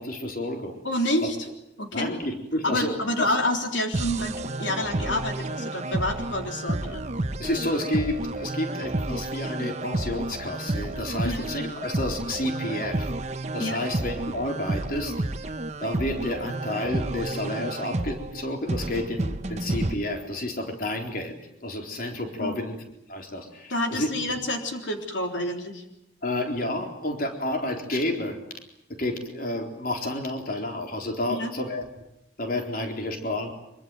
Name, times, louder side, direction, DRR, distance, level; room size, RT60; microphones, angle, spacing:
voice 1, 0.0-0.8 1.9-3.4 7.4-13.1 13.5-15.2 15.8-22.8 23.1-24.1 26.2-28.4 28.9-31.8 32.4-33.5, left 1 dB, 50° left, 3 dB, 4.0 m, -30 dB
voice 2, 0.8-1.5 1.8-2.1 2.6-7.0 11.2-11.5 13.6-13.8 22.4-22.6 23.7-25.8 31.3-31.5, left 1 dB, 80° left, 3 dB, 3.5 m, -28 dB
sound 1, 3.9-19.9, right 2 dB, 35° right, 0.9 m, -31 dB
26.0 x 23.5 x 7.9 m, 0.82 s
head